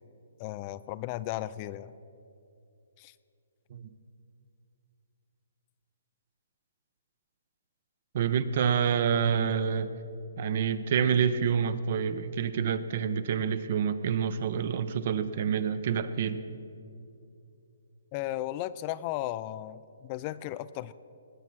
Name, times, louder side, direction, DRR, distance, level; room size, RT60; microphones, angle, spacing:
voice 1, 0.4-1.9 3.0-3.1 18.1-20.9, left 14 dB, 30° left, 15 dB, 0.3 m, -35 dB
voice 2, 8.1-9.9 10.4-16.4, right 7 dB, 50° right, 13 dB, 0.7 m, -27 dB
19.0 x 7.0 x 6.2 m, 2.6 s
hypercardioid pair, 150°, 0 cm